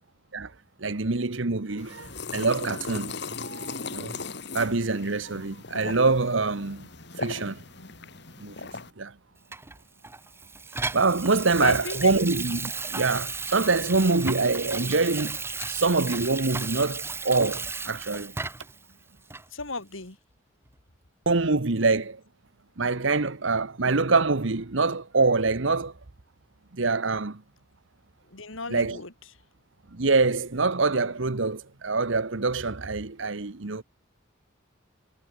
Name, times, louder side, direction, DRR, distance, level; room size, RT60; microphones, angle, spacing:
voice 1, 0.8-3.2 3.4-4.2 4.5-6.9 7.2-7.6 8.4-8.7 9.0-9.1 10.9-15.4 15.7-18.3 21.3-22.2 22.8-25.9 26.7-27.4 28.7-29.0 29.9-33.8, right 3 dB, 65° right, 1.2 m, -25 dB
sound 1, 1.8-8.9, left 4 dB, 55° left, 2.3 m, -38 dB
Water tap faucet / Sink (filling or washing), 9.5-18.8 19.3-19.4, right 4 dB, 10° right, 0.9 m, -34 dB
voice 2, 11.6-12.1 19.5-20.2 28.3-29.1, left 3 dB, 75° left, 4.0 m, -33 dB
head